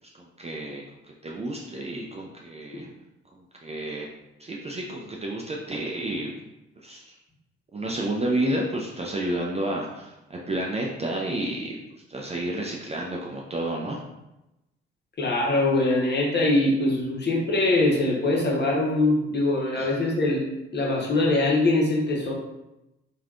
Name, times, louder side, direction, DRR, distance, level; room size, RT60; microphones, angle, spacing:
voice 1, 0.2-0.8 1.2-2.9 3.6-4.1 4.4-6.3 6.8-7.1 7.7-11.8 12.1-14.0 19.7-19.9, right 1 dB, 20° right, -2 dB, 0.4 m, -30 dB
voice 2, 15.2-20.4 20.7-22.3, left 2 dB, 35° left, -3 dB, 1.0 m, -23 dB
3.2 x 2.4 x 2.4 m, 0.94 s
hypercardioid pair, 45°, 31 cm